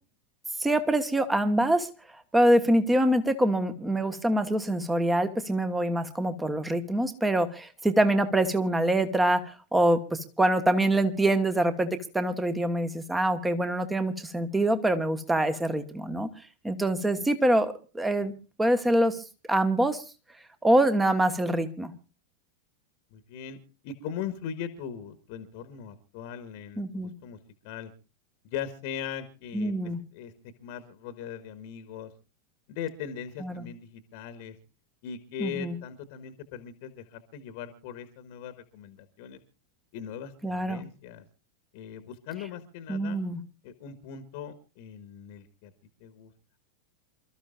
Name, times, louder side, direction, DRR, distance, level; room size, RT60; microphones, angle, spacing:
voice 1, 0.6-1.9 2.3-16.3 16.6-18.3 18.6-19.2 19.5-20.0 20.6-21.9 26.8-27.1 29.5-30.0 33.4-33.7 35.4-35.8 40.4-40.8 42.9-43.4, right 1 dB, 10° right, 10 dB, 1.5 m, -25 dB
voice 2, 23.1-23.6 23.8-27.4 27.6-27.9 28.4-30.3 30.6-32.1 32.7-34.5 35.0-39.4 39.9-41.2 41.7-43.2 43.6-45.7 46.0-46.3, left 8 dB, 45° left, 11 dB, 1.4 m, -39 dB
28.0 x 13.5 x 2.5 m, 0.31 s
figure-of-eight pair, 90°, 0 cm